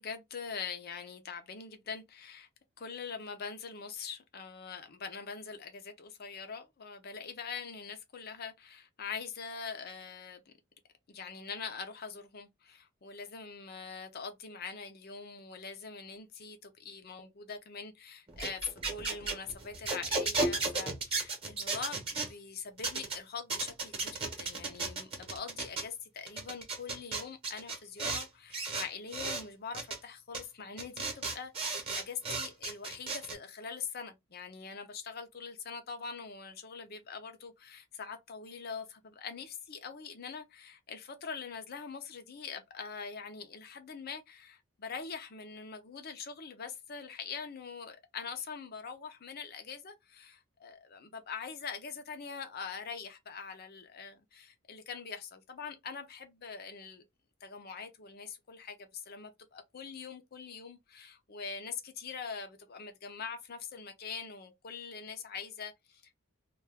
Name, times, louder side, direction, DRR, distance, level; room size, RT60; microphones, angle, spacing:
voice 1, 0.0-2.5 2.8-10.5 11.1-57.0 57.4-66.2, left 5 dB, 45° left, 0.5 m, -43 dB
sound 1, 18.3-22.3 22.8-23.2 23.5-25.8 26.3-28.3 28.5-29.4 29.7-30.0 30.3-30.4 30.8-33.3, right 3 dB, 25° right, 0.9 m, -34 dB
2.4 x 2.3 x 3.4 m
head